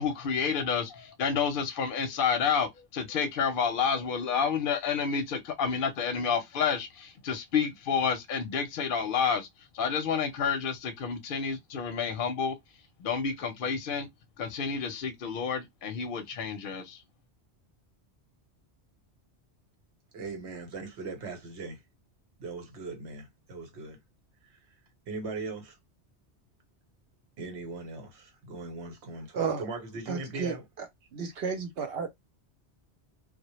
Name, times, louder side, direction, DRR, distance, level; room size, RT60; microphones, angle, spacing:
voice 1, 0.0-9.5 9.7-12.6 13.0-14.1 14.4-17.0, left 6 dB, 60° left, 0.7 m, -29 dB
voice 2, 20.1-21.8 22.4-24.0 25.1-25.8 27.4-30.6, right 3 dB, 85° right, 1.1 m, -39 dB
voice 3, 29.3-29.7 30.1-30.9 31.1-32.1, right 6 dB, 70° right, 0.8 m, -32 dB
2.1 x 2.0 x 2.8 m
omnidirectional pair, 1.1 m